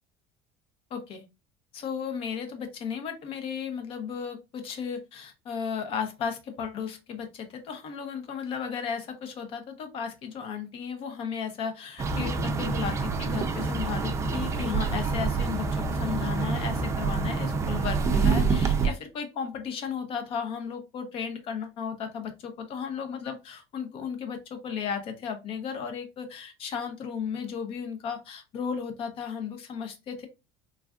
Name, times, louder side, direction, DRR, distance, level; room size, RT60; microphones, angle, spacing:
voice 1, 0.9-1.2 1.7-30.3, left 6 dB, 50° left, 7 dB, 0.7 m, -35 dB
sound 1, 12.0-18.9, right 4 dB, 25° right, 0.4 m, -27 dB
3.3 x 2.4 x 2.3 m, 0.26 s
cardioid pair, 125°, 12 cm